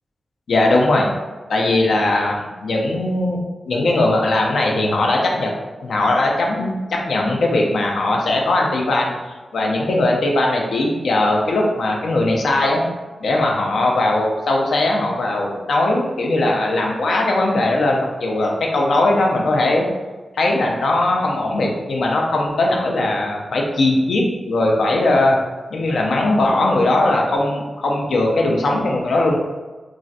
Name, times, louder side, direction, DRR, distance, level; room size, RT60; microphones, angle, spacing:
voice 1, 0.5-1.1 1.5-3.4 3.7-5.5 5.8-9.1 9.5-12.8 13.2-19.8 20.4-25.4 25.7-29.4, left 2 dB, 75° left, 0 dB, 0.5 m, -19 dB
3.0 x 2.4 x 2.6 m, 1.2 s
wide cardioid pair, 160°, 0 cm